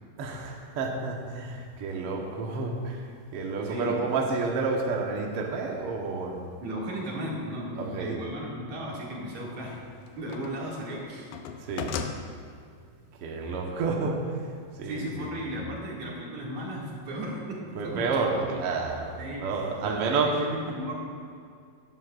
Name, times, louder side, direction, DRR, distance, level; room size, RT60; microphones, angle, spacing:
voice 1, 0.2-3.0 3.3-6.5 7.7-8.2 11.7-11.9 13.2-14.2 14.8-15.3 17.7-19.1 19.4-20.4, right 4 dB, 80° right, 0 dB, 1.3 m, -30 dB
voice 2, 3.6-4.0 6.6-9.8 10.2-11.3 14.8-18.5 19.2-21.0, equal, 55° right, -4 dB, 3.3 m, -35 dB
sound 1, 7.6-7.7 9.4-10.7 11.0-12.2, left 7 dB, 75° left, 2.3 m, -36 dB
17.0 x 11.5 x 2.5 m, 2.2 s
omnidirectional pair, 4.3 m